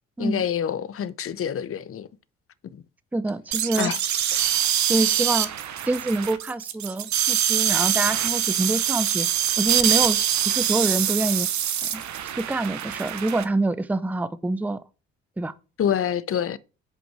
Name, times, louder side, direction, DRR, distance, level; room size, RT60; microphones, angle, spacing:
voice 1, 0.2-2.1 2.7-2.8 3.8-4.0 4.3-4.5 15.8-16.6, left 9 dB, 35° left, 0.7 m, -27 dB
voice 2, 3.1-3.9 4.9-5.5 5.9-9.3 9.6-11.5 11.9-12.0 12.4-14.8 15.4-15.5, right 2 dB, 5° right, 0.6 m, -26 dB
sound 1, 3.5-13.4, right 10 dB, 50° right, 0.9 m, -24 dB
6.0 x 5.2 x 6.1 m
hypercardioid pair, 50°, 37 cm